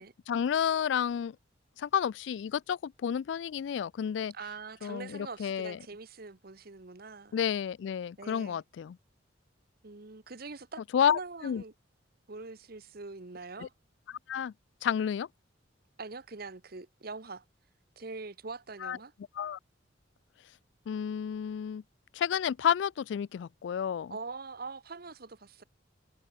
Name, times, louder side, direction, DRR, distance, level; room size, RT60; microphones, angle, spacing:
voice 1, 0.3-1.4 1.8-4.3 4.8-5.8 7.3-9.0 10.9-11.6 13.6-13.7 14.3-14.5 14.8-15.3 18.8-19.0 19.4-19.6 20.9-21.8 22.1-24.2, left 8 dB, 70° left, 0.3 m, -30 dB
voice 2, 4.3-7.4 8.2-8.6 9.8-11.7 12.3-13.7 16.0-17.4 18.0-19.1 24.1-25.6, right 4 dB, 55° right, 1.1 m, -43 dB
head